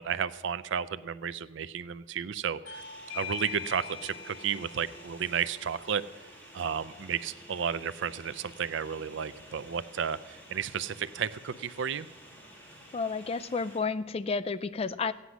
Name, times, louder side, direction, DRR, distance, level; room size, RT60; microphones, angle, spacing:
voice 1, 0.0-2.8 3.1-6.0 6.5-12.1, right 7 dB, 65° right, 15 dB, 0.4 m, -33 dB
Bell / Doorbell, 2.7-7.8, left 7 dB, 65° left, 2.1 m, -45 dB
sound 1, 2.7-13.8, equal, 10° left, 2.5 m, -51 dB
voice 2, 12.9-15.1, left 4 dB, 30° left, 13 dB, 0.3 m, -31 dB
14.5 x 9.6 x 6.1 m, 1.2 s
head